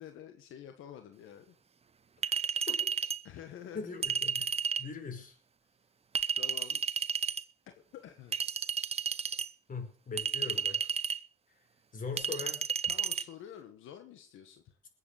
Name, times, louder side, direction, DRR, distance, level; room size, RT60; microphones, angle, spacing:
voice 1, 0.0-1.5 2.5-2.7 3.2-3.9 6.3-6.8 7.7-8.4 12.9-14.8, left 9 dB, 85° left, 7 dB, 1.6 m, -49 dB
Chink clink, 2.2-3.2 4.0-4.9 6.1-7.4 8.3-9.5 10.2-11.2 12.2-13.2, right 6 dB, 30° right, 0.7 m, -32 dB
voice 2, 3.7-5.4 9.7-10.8 11.9-12.6, left 4 dB, 40° left, 6 dB, 5.3 m, -40 dB
21.0 x 8.3 x 6.6 m, 0.43 s
cardioid pair, 90°, 20 cm